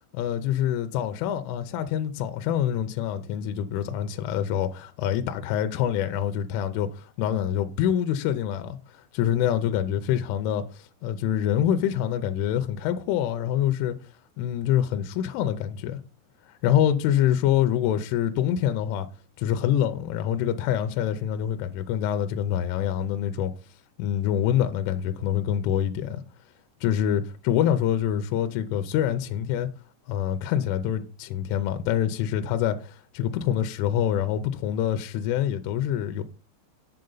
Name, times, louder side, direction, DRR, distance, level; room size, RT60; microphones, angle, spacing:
voice 1, 0.2-8.8 9.1-14.0 14.4-16.0 16.5-19.1 19.4-23.5 24.0-26.2 26.8-29.7 30.1-36.2, left 10 dB, 80° left, 3.1 m, -26 dB
7.7 x 7.3 x 3.9 m
omnidirectional pair, 5.8 m